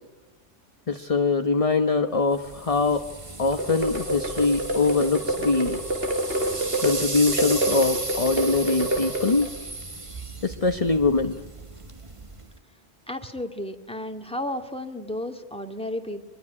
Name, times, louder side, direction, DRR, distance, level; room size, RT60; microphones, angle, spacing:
voice 1, 0.9-3.0 3.4-5.8 6.8-9.5 10.4-11.4, left 3 dB, 30° left, 7 dB, 1.1 m, -23 dB
sound 1, 2.3-12.6, right 2 dB, 25° right, 1.5 m, -35 dB
sound 2, 3.5-9.6, right 1 dB, 55° right, 4.2 m, -28 dB
voice 2, 13.1-16.2, left 1 dB, 5° left, 4 dB, 2.2 m, -33 dB
25.5 x 22.0 x 9.9 m, 1.2 s
omnidirectional pair, 1.2 m